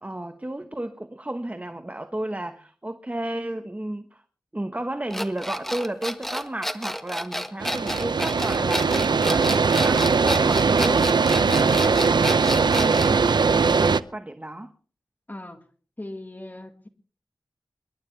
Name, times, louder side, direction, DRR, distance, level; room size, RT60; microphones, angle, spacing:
voice 1, 0.0-4.2 4.5-14.7, right 1 dB, 20° right, 1.1 m, -33 dB
sound 1, 5.1-13.2, equal, 5° left, 1.5 m, -30 dB
sound 2, 7.6-14.0, right 5 dB, 70° right, 0.6 m, -20 dB
voice 2, 15.3-15.6 16.0-16.9, left 1 dB, 25° left, 1.9 m, -38 dB
27.0 x 12.0 x 3.3 m
wide cardioid pair, 85°, 8 cm